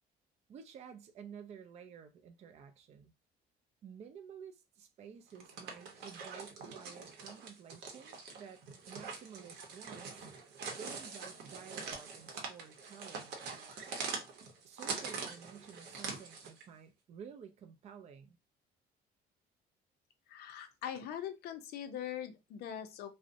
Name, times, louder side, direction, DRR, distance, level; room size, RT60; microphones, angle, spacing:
voice 1, 0.5-3.1 3.8-10.3 10.7-13.8 14.6-18.4, right 7 dB, 40° right, 0.4 m, -52 dB
sound 1, 5.3-16.6, right 5 dB, 75° right, 0.7 m, -44 dB
voice 2, 20.3-23.1, left 9 dB, 75° left, 0.5 m, -42 dB
2.5 x 2.0 x 2.5 m
cardioid pair, 110°, 17 cm